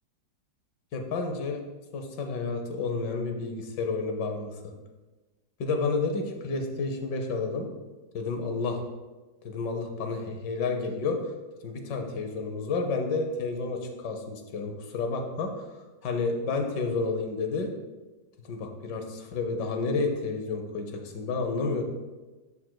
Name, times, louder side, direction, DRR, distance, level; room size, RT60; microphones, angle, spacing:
voice 1, 0.9-1.6 1.9-4.7 5.6-7.7 8.1-8.8 9.4-11.2 11.6-15.5 16.0-17.7 18.5-21.8, left 4 dB, 70° left, 4 dB, 1.5 m, -30 dB
13.0 x 4.5 x 2.2 m, 1.2 s
omnidirectional pair, 2.0 m